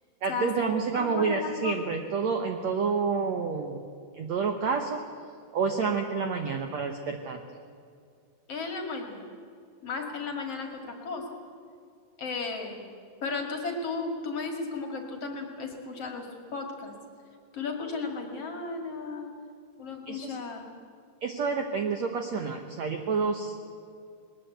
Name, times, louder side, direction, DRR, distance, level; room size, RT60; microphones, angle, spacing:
voice 1, 0.2-3.8 4.2-5.0 5.5-7.4 20.1-20.4 21.2-23.6, right 5 dB, 85° right, 5 dB, 1.5 m, -29 dB
voice 2, 0.9-1.8 8.5-9.2 9.8-11.2 12.2-12.9 13.2-16.9 17.5-19.3 19.8-20.6, left 4 dB, 45° left, 3 dB, 2.5 m, -34 dB
20.5 x 20.5 x 8.0 m, 2.3 s
omnidirectional pair, 4.9 m